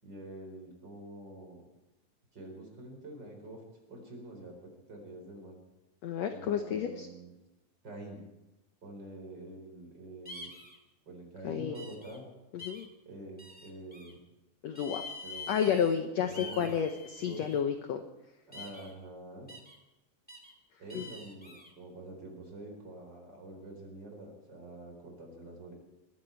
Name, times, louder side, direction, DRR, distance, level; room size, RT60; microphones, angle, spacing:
voice 1, 0.0-1.7 2.3-3.6 3.9-5.6 6.3-7.3 7.8-8.2 8.8-10.5 11.1-12.2 13.1-14.2 15.2-15.8 16.3-16.7 17.2-17.4 18.5-19.5 20.8-25.7, right 1 dB, 30° right, 2 dB, 4.5 m, -46 dB
voice 2, 6.0-7.1 11.4-11.8 12.5-12.9 14.6-15.0 15.5-18.0 20.9-21.0, left 8 dB, 75° left, 7 dB, 1.6 m, -31 dB
sound 1, 10.2-10.8 11.7-12.2 12.6-12.9 13.4-14.1 14.7-16.0 16.3-17.6 18.5-18.9 19.5-19.8 20.3-20.5 20.9-21.7, left 3 dB, 5° left, 1.1 m, -46 dB
20.5 x 15.0 x 4.5 m, 1.0 s
omnidirectional pair, 4.0 m